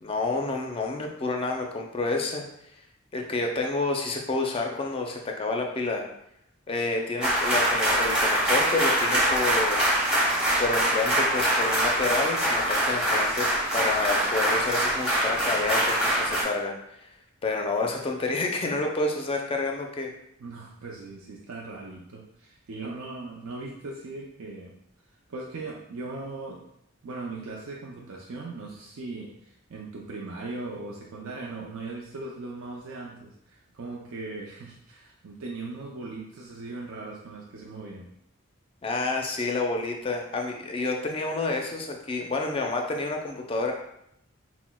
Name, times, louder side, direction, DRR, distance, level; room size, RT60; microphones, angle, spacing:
voice 1, 0.0-2.4 2.7-2.8 3.1-6.0 6.7-9.9 10.6-17.1 17.4-20.1 38.8-43.7, left 3 dB, 25° left, 2 dB, 0.4 m, -29 dB
sound 1, 7.2-16.4, right 1 dB, 5° right, 0.9 m, -24 dB
voice 2, 20.4-24.7 25.3-26.6 27.0-38.1, right 3 dB, 85° right, -2 dB, 0.5 m, -39 dB
5.9 x 2.1 x 2.2 m, 0.77 s
head